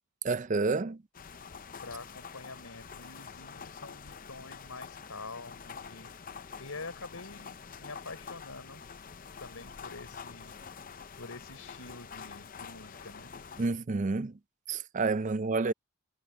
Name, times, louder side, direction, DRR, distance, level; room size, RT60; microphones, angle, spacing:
voice 1, 0.2-1.0 13.6-14.3 14.7-15.7, right 3 dB, 35° right, 0.4 m, -29 dB
sound 1, 1.1-13.7, left 6 dB, 40° left, 0.6 m, -47 dB
voice 2, 1.8-6.1 6.4-8.9 9.4-10.5 11.2-13.3, left 3 dB, 80° left, 4.0 m, -46 dB
head